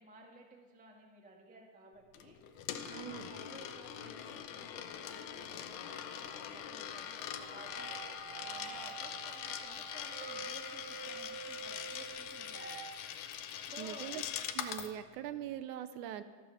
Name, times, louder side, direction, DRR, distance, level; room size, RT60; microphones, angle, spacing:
voice 1, 0.0-12.8 13.7-14.1, right 1 dB, 10° right, 1 dB, 0.4 m, -56 dB
Coin (dropping), 2.1-14.9, left 9 dB, 85° left, 2.5 m, -43 dB
voice 2, 2.9-3.3 13.8-14.2 14.5-16.2, right 11 dB, 80° right, 11 dB, 2.0 m, -42 dB
sound 1, 7.2-12.9, right 6 dB, 40° right, 2.9 m, -48 dB
13.5 x 13.0 x 7.2 m, 1.5 s
omnidirectional pair, 3.7 m